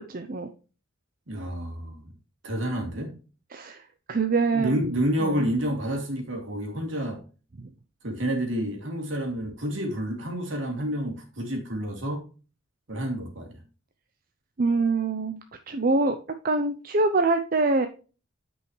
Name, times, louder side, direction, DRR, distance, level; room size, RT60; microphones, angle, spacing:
voice 1, 0.1-0.5 3.5-4.8 5.2-5.4 7.6-7.7 14.6-15.4 15.7-16.2 16.4-17.9, right 3 dB, 45° right, 0.6 m, -24 dB
voice 2, 1.3-2.1 2.4-3.1 4.5-7.2 8.0-12.2 12.9-13.6, equal, 65° right, 2.8 m, -29 dB
9.3 x 5.5 x 3.1 m
head